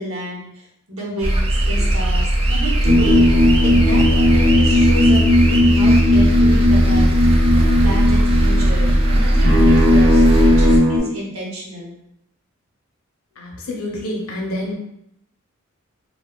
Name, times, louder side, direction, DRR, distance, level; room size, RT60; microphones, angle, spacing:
voice 1, 0.0-3.2 3.6-7.1 7.5-11.9, right 1 dB, 80° right, -3 dB, 0.9 m, -30 dB
sound 1, 1.2-10.8, right 1 dB, 25° right, 0.4 m, -18 dB
sound 2, 2.8-11.0, left 1 dB, 55° right, 0.8 m, -15 dB
voice 2, 13.4-14.7, left 1 dB, 80° left, -1 dB, 0.7 m, -27 dB
3.3 x 2.2 x 2.3 m, 0.75 s
head